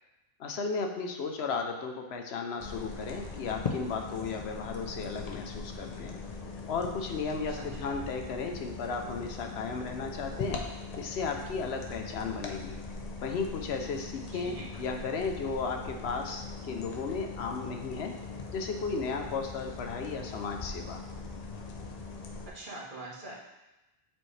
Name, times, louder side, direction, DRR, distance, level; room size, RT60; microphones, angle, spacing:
voice 1, 0.4-6.2 6.7-10.6 11.0-12.8 13.2-18.1 18.5-21.0, left 4 dB, 85° left, 4 dB, 1.0 m, -35 dB
sound 1, 2.6-22.5, left 4 dB, 45° left, 0.7 m, -41 dB
voice 2, 7.5-8.0 14.3-14.7 22.5-23.4, right 2 dB, 55° right, -4 dB, 1.4 m, -43 dB
7.2 x 4.4 x 3.2 m, 1.0 s
omnidirectional pair, 1.0 m